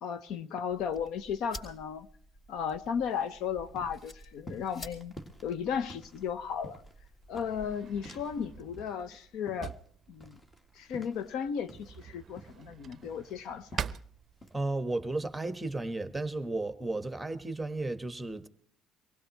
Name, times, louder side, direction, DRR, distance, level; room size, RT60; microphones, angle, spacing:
voice 1, 0.0-2.1 2.5-5.1 5.4-6.8 7.3-9.7 10.1-10.4 10.8-13.9, left 7 dB, 70° left, 0.9 m, -35 dB
sound 1, 0.7-8.6, equal, 40° left, 4.2 m, -51 dB
sound 2, 3.0-8.5 8.7-12.0 12.4-14.1 14.4-14.6, equal, 20° left, 1.6 m, -51 dB
Drawer open or close, 6.1-14.9, right 8 dB, 45° right, 0.6 m, -45 dB
voice 2, 14.5-18.5, right 2 dB, 10° right, 1.3 m, -34 dB
23.5 x 16.5 x 3.1 m
supercardioid pair, 95°, 0 cm